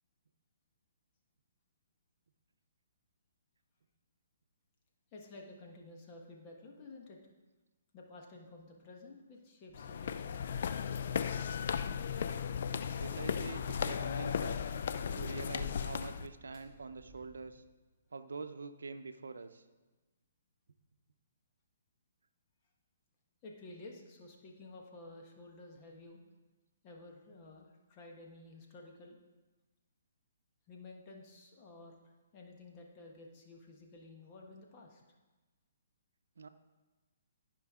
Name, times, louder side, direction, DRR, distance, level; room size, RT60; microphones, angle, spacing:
voice 1, 5.1-7.2 7.9-10.8 23.4-26.2 26.8-29.2 30.7-35.0, left 2 dB, 30° left, 0 dB, 1.3 m, -53 dB
sound 1, 9.7-16.3, left 7 dB, 60° left, 0.4 m, -36 dB
sound 2, 9.7-17.7, right 2 dB, 15° right, 3.3 m, -63 dB
voice 2, 13.0-14.6 15.1-17.6 18.1-19.6 36.4-36.5, right 4 dB, 80° right, 9 dB, 0.7 m, -45 dB
13.5 x 5.3 x 3.7 m, 1.2 s
hypercardioid pair, 140°, 0 cm